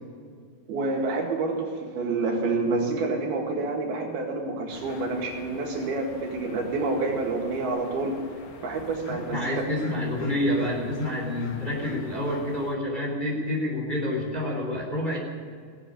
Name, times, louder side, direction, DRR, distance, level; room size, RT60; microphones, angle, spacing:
voice 1, 0.7-8.2 8.6-9.6, right 3 dB, 80° right, 0 dB, 4.0 m, -28 dB
sound 1, 4.7-12.8, left 4 dB, 60° left, 1.4 m, -45 dB
voice 2, 9.1-15.2, left 1 dB, 15° left, -2 dB, 3.3 m, -28 dB
18.5 x 7.8 x 8.8 m, 2.1 s
omnidirectional pair, 4.3 m